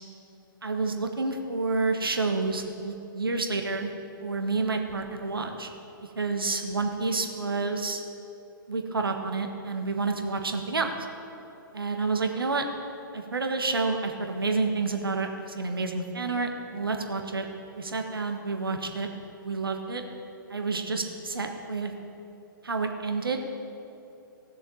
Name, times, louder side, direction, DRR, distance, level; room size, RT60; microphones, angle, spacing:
voice 1, 0.6-3.9 4.2-5.7 6.2-8.0 8.7-10.9 11.7-12.7 13.1-17.5 17.7-19.1 19.4-20.0 20.5-21.9 22.6-23.5, right 3 dB, 80° right, 4 dB, 1.4 m, -29 dB
17.0 x 7.2 x 7.0 m, 2.9 s
figure-of-eight pair, 120°, 12 cm